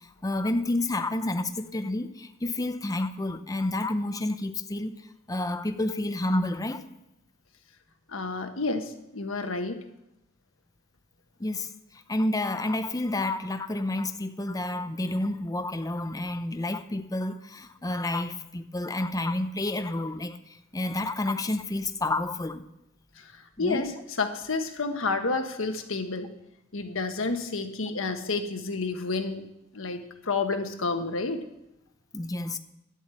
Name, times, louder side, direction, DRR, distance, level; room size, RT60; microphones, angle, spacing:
voice 1, 0.0-4.9 5.3-6.8 11.4-22.6 23.6-23.8 32.1-32.6, left 2 dB, 20° left, 0.6 m, -30 dB
voice 2, 8.1-9.8 23.2-23.9 24.2-26.3 26.7-29.4 29.7-31.4, left 3 dB, 80° left, 1.3 m, -30 dB
11.0 x 8.2 x 8.4 m
head